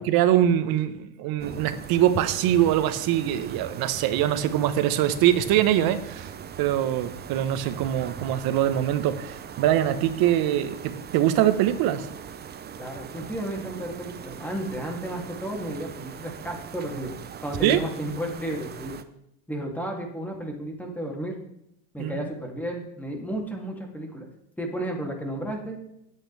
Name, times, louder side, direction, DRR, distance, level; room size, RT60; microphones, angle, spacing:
voice 1, 0.0-6.3 6.6-12.1 17.6-17.8 22.0-22.2, right 11 dB, 50° right, 11 dB, 1.3 m, -23 dB
sound 1, 1.4-19.0, right 8 dB, 20° right, 0.7 m, -40 dB
voice 2, 12.8-17.1 17.4-19.0 19.5-21.4 21.9-24.3 24.6-25.8, right 1 dB, 5° left, 0 dB, 2.9 m, -33 dB
20.5 x 8.6 x 3.5 m, 0.77 s
supercardioid pair, 120°, 46 cm